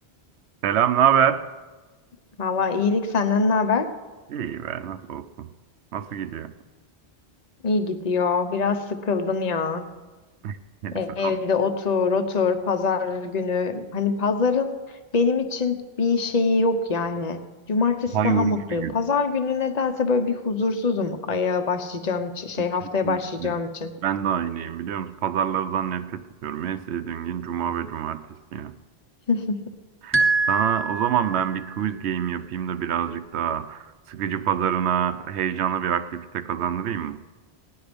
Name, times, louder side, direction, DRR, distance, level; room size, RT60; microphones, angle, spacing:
voice 1, 0.6-1.5 4.3-5.5 5.9-6.5 10.4-10.6 10.8-11.3 18.1-18.9 23.0-23.6 24.0-28.3 28.5-28.7 30.0-30.2 30.5-37.2, right 9 dB, 85° right, 12 dB, 0.9 m, -26 dB
voice 2, 2.4-3.9 7.6-9.9 10.9-14.7 15.1-17.4 17.7-23.9 29.3-29.6, left 4 dB, 40° left, 8 dB, 1.0 m, -24 dB
sound 1, 30.1-31.7, right 3 dB, 15° right, 0.5 m, -24 dB
17.5 x 10.5 x 5.2 m, 1.3 s
omnidirectional pair, 1.1 m